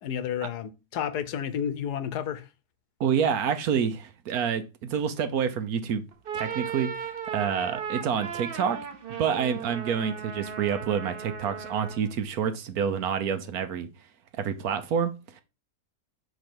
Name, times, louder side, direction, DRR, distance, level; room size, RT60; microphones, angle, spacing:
voice 1, 0.0-2.5, left 9 dB, 80° left, 1.3 m, -31 dB
voice 2, 3.0-6.0 6.3-8.8 9.2-13.9 14.3-15.4, right 7 dB, 70° right, 1.3 m, -28 dB
sound 1, 6.1-12.1, right 7 dB, 40° right, 0.9 m, -36 dB
5.2 x 4.7 x 6.0 m
omnidirectional pair, 1.7 m